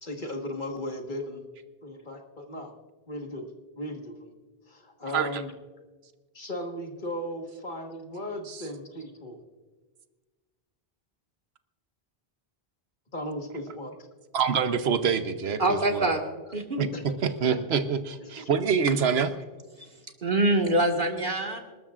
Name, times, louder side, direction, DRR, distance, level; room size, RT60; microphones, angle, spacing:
voice 1, 0.0-1.4 1.8-2.7 3.1-3.4 3.8-4.3 4.7-5.5 6.3-9.4 13.1-14.0 16.9-17.0 17.4-17.6 18.2-18.5, left 1 dB, 50° left, 2 dB, 1.7 m, -36 dB
voice 2, 14.3-16.1 16.8-16.9 17.2-19.3, right 6 dB, 90° right, 9 dB, 1.1 m, -26 dB
voice 3, 15.6-16.2 16.5-16.9 19.8-19.9 20.2-21.6, right 1 dB, 55° right, 2 dB, 1.9 m, -25 dB
27.0 x 13.0 x 2.5 m, 1.3 s
omnidirectional pair, 1.0 m